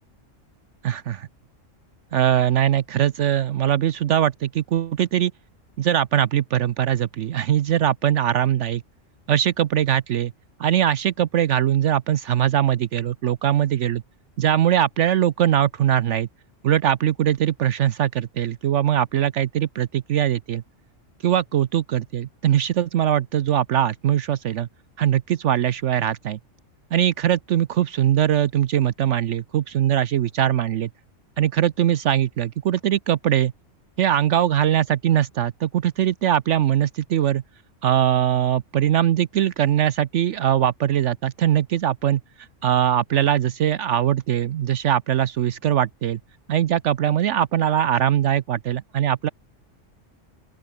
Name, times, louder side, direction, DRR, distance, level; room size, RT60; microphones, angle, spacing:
voice 1, 0.8-1.2 2.1-5.3 5.8-8.8 9.3-10.3 10.6-14.0 14.4-16.3 16.6-20.6 21.2-24.7 25.0-26.4 26.9-30.9 31.4-33.5 34.0-37.4 37.8-42.2 42.6-46.2 46.5-49.3, right 11 dB, 70° right, 1.0 m, -21 dB
open air
omnidirectional pair, 1.3 m